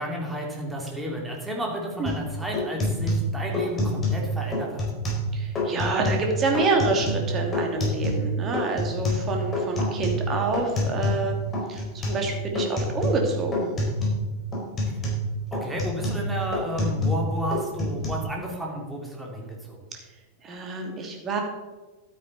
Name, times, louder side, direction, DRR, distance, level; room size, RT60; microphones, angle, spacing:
voice 1, 0.0-4.9 14.8-15.0 15.5-19.8, equal, 10° right, -1 dB, 3.0 m, -32 dB
sound 1, 2.1-2.2 2.5-4.2 4.5-5.3 5.6-6.3 6.5-8.3 8.5-11.3 11.5-12.2 12.5-13.3 13.5-14.2 14.5-17.2 17.5-18.1, left 1 dB, 20° left, 4.4 m, -27 dB
voice 2, 5.3-11.3 11.7-13.7 20.4-21.4, right 3 dB, 25° right, 2 dB, 2.6 m, -27 dB
12.5 x 9.3 x 4.2 m, 1.2 s
figure-of-eight pair, 90°, 0 cm